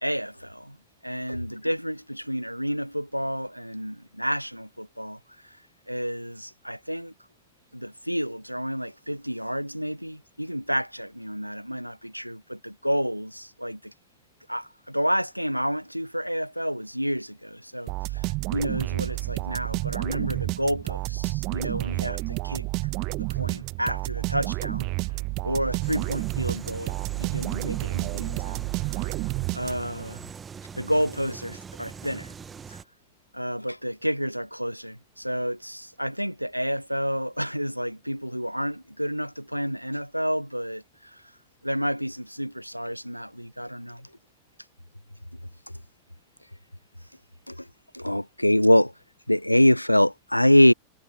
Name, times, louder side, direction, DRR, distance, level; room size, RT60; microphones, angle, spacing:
voice 1, 0.0-0.8 1.0-5.6 5.9-7.1 7.7-13.9 14.5-22.7 23.2-24.9 25.4-29.1 29.5-30.3 30.7-32.3 32.7-32.8 33.3-41.3 41.6-44.1, equal, 90° right, 1.0 m, -31 dB
sound 1, 17.9-30.1, right 25 dB, 40° right, 1.5 m, -30 dB
sound 2, 25.8-32.8, right 6 dB, 20° right, 1.7 m, -42 dB
voice 2, 47.9-48.9 49.3-50.7, left 1 dB, 90° left, 0.8 m, -18 dB
figure-of-eight pair, 90°, 0 cm